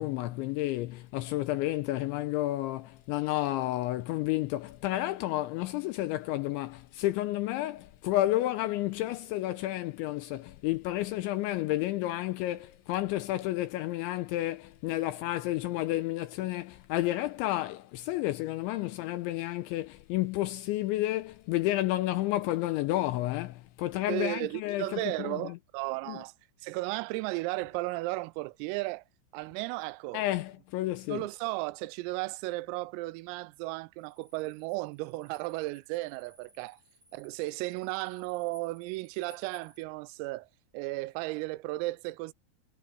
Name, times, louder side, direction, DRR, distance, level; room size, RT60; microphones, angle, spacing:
voice 1, 0.0-25.5 26.1-26.2 30.1-31.3, left 16 dB, 85° left, 2.7 m, -31 dB
voice 2, 24.1-26.3 26.6-29.0 29.3-30.2 31.1-36.8 37.1-40.5 40.7-42.3, right 21 dB, 85° right, 3.3 m, -35 dB
sound 1, 34.0-39.8, left 2 dB, 20° right, 7.5 m, -60 dB
omnidirectional pair, 5.9 m